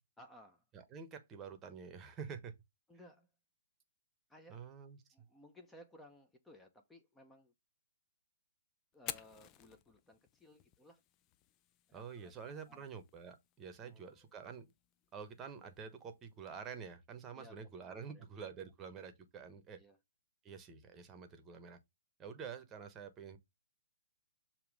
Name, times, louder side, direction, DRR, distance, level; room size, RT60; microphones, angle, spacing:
voice 1, 0.2-0.6 2.9-3.3 4.3-4.6 5.1-7.5 8.9-11.0 11.9-12.3 12.7-12.9 13.8-14.1 17.3-17.5 17.9-18.2 19.8-20.0, left 1 dB, 5° left, 0.9 m, -59 dB
voice 2, 0.7-2.5 4.5-5.0 11.9-14.6 15.1-19.8 20.4-21.8 22.2-23.4, right 6 dB, 20° right, 1.1 m, -48 dB
Fire, 8.9-16.9, left 12 dB, 25° left, 0.5 m, -54 dB
7.0 x 2.9 x 4.9 m
hypercardioid pair, 135°, 0 cm